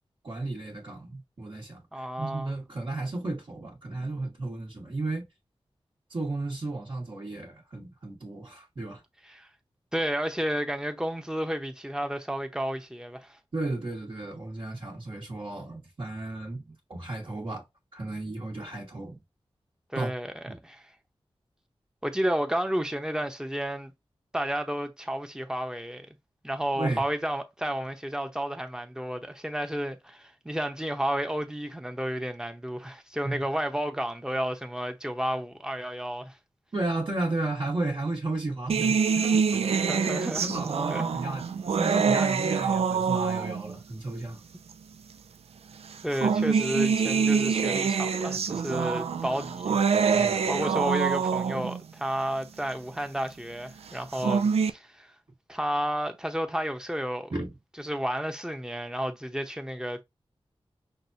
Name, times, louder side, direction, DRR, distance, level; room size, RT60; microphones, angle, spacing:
voice 1, 0.2-5.3 6.1-9.0 13.5-17.6 17.9-19.2 19.9-20.1 20.5-20.6 26.7-27.1 33.2-33.4 36.7-39.9 40.4-44.4 50.1-50.6 57.3-57.5, right 2 dB, 55° right, 1.5 m, -34 dB
voice 2, 1.9-2.5 9.3-9.5 9.9-13.4 19.9-20.3 20.6-20.9 22.0-23.9 24.3-26.1 26.4-36.4 39.7-40.5 40.9-41.0 46.0-49.8 50.1-55.1 55.5-57.3 57.8-60.0, equal, 5° right, 0.8 m, -31 dB
sound 1, 38.7-43.8 44.7-44.8 45.9-51.8 53.9-54.7, right 6 dB, 90° right, 0.4 m, -25 dB
6.0 x 2.2 x 2.7 m
wide cardioid pair, 75°, 10 cm